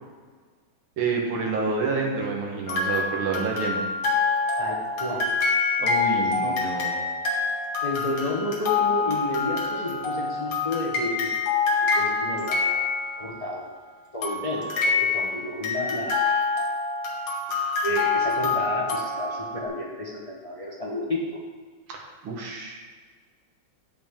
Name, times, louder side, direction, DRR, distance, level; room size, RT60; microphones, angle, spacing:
voice 1, 1.0-3.8 5.8-6.9 21.9-22.8, right 4 dB, 80° right, -1 dB, 2.2 m, -28 dB
sound 1, 2.7-13.4 14.2-19.7, left 4 dB, 90° left, 2.1 m, -26 dB
voice 2, 4.6-5.4 6.2-6.5 7.8-11.4 11.8-12.9 13.2-13.6 14.1-16.4 17.8-21.4, left 1 dB, 60° left, -4 dB, 0.3 m, -31 dB
7.8 x 7.2 x 3.6 m, 1.5 s
omnidirectional pair, 2.3 m